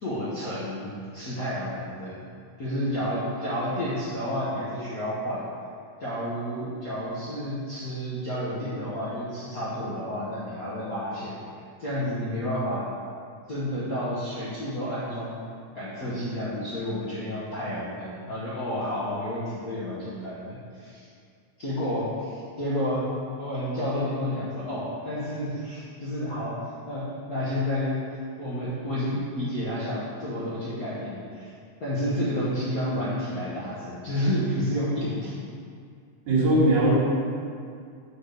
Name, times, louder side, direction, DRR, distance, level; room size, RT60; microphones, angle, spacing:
voice 1, 0.0-2.2 2.6-5.4 6.0-11.4 11.8-12.9 13.5-15.4 15.7-21.1 21.6-23.0 23.4-26.6 26.9-27.9 28.4-31.5 31.8-35.4, equal, 55° left, -9 dB, 1.0 m, -30 dB
voice 2, 36.3-36.9, right 1 dB, 80° right, -9 dB, 3.6 m, -19 dB
7.8 x 4.1 x 6.6 m, 2.3 s
omnidirectional pair, 3.3 m